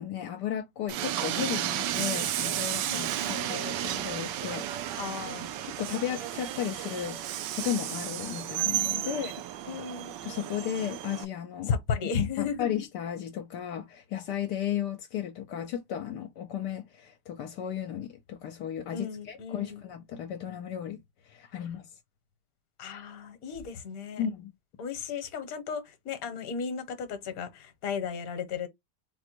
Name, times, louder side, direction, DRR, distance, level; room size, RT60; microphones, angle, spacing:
voice 1, 0.0-5.0 5.8-7.2 7.6-9.3 10.2-11.7 12.1-21.0 21.3-21.9 24.2-24.5, left 9 dB, 80° left, 1.2 m, -34 dB
Train, 0.9-11.2, right 12 dB, 85° right, 1.2 m, -33 dB
voice 2, 2.9-3.4 5.0-5.6 9.0-9.3 9.6-10.1 11.7-12.7 18.9-19.8 21.5-21.7 22.8-24.2 24.8-28.7, left 6 dB, 60° left, 1.3 m, -35 dB
3.9 x 2.1 x 4.4 m
omnidirectional pair, 1.8 m